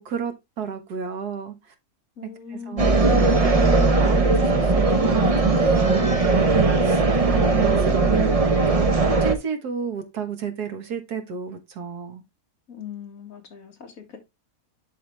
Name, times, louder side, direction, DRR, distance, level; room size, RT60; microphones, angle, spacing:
voice 1, 0.0-1.7 2.2-8.9 9.2-12.2, right 7 dB, 75° right, 1.9 m, -32 dB
voice 2, 2.2-3.6 12.7-14.2, left 7 dB, 60° left, 2.2 m, -40 dB
sound 1, 2.8-9.4, right 3 dB, 30° right, 0.7 m, -19 dB
11.0 x 3.7 x 3.3 m
omnidirectional pair, 1.7 m